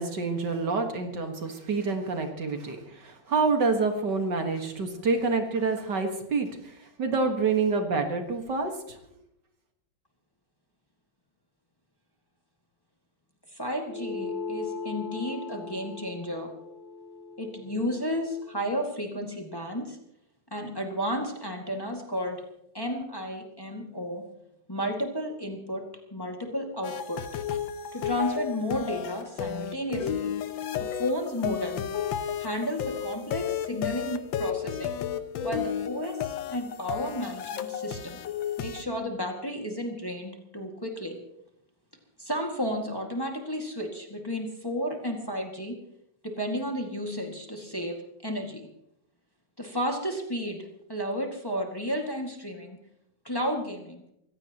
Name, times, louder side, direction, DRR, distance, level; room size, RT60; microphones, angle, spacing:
voice 1, 0.0-9.0, right 4 dB, 65° right, 5 dB, 2.2 m, -27 dB
voice 2, 13.5-16.5 17.4-20.0 20.5-22.4 22.7-24.2 24.7-27.2 27.9-30.3 30.7-31.9 32.4-35.0 35.4-38.2 38.6-41.2 42.2-45.8 46.2-48.0 48.2-48.6 49.6-52.8 53.2-54.0, equal, 10° left, 1 dB, 2.0 m, -32 dB
sound 1, 13.9-18.7, left 4 dB, 40° left, 1.6 m, -39 dB
sound 2, 26.8-38.8, left 8 dB, 85° left, 1.6 m, -33 dB
24.0 x 16.5 x 3.0 m, 0.79 s
omnidirectional pair, 2.1 m